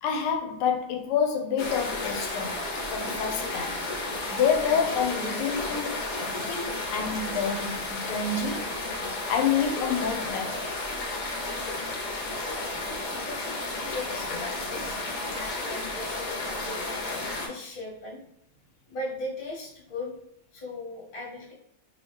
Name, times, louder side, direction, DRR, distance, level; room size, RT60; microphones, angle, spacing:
voice 1, 0.0-2.6 2.9-3.8 4.3-6.1 6.5-8.7 9.3-10.7, left 6 dB, 85° left, 1.5 m, -28 dB
sound 1, 1.6-17.5, left 2 dB, 60° left, 0.9 m, -32 dB
voice 2, 13.0-15.0 15.3-18.2 18.9-20.1 20.5-21.5, left 2 dB, 30° left, 1.0 m, -39 dB
3.0 x 2.8 x 3.2 m
omnidirectional pair, 2.3 m